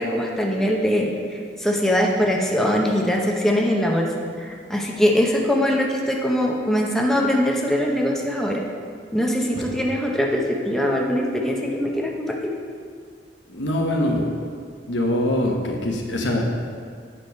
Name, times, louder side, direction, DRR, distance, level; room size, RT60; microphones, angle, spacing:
voice 1, 0.0-4.1 4.4-8.6 9.1-12.5, equal, ahead, -1 dB, 0.7 m, -22 dB
voice 2, 13.5-14.2 14.9-16.4, left 1 dB, 90° left, 1 dB, 1.1 m, -23 dB
8.7 x 4.8 x 5.3 m, 2.1 s
head